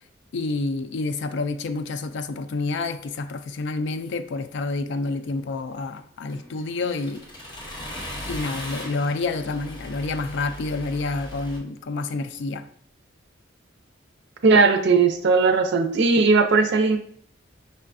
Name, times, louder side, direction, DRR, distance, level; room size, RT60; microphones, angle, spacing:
voice 1, 0.3-7.2 8.3-12.7, left 3 dB, 65° left, 0.4 m, -28 dB
Accelerating revving vroom, 6.3-11.6, left 1 dB, 25° left, 0.9 m, -38 dB
voice 2, 14.4-17.0, right 4 dB, 60° right, 0.5 m, -18 dB
5.5 x 3.3 x 2.5 m
head